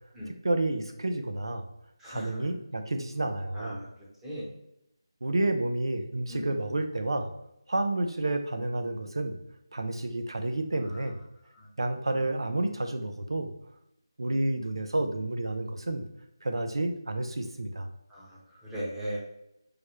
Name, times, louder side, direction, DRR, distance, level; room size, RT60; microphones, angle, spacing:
voice 1, 0.3-1.7 2.1-3.8 5.2-7.3 7.7-9.4 9.7-11.2 11.8-13.5 14.2-16.1 16.4-17.9, right 2 dB, 75° right, 6 dB, 0.5 m, -30 dB
voice 2, 2.0-2.4 3.5-3.9 4.2-4.5 6.3-6.5 10.8-11.1 11.5-11.7 18.1-19.2, equal, 5° right, -8 dB, 0.8 m, -38 dB
4.7 x 2.1 x 3.0 m, 0.82 s
figure-of-eight pair, 165°, 3 cm